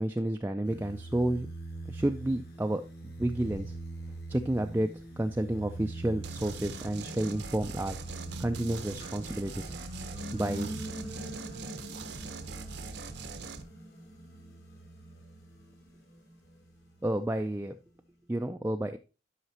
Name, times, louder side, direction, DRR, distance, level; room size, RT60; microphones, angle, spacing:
voice 1, 0.0-1.5 1.9-3.8 4.3-8.0 8.4-9.7 10.3-10.7 17.0-17.7 18.3-19.0, right 1 dB, 10° right, 5 dB, 0.3 m, -31 dB
sound 1, 0.6-15.9 16.4-17.5, right 2 dB, 55° left, 1.9 m, -44 dB
sound 2, 2.7-2.8 3.3-5.7 6.2-17.5, equal, 75° left, 3.0 m, -47 dB
sound 3, 6.2-13.6, right 4 dB, 75° right, 0.8 m, -42 dB
11.0 x 5.8 x 2.8 m, 0.32 s
head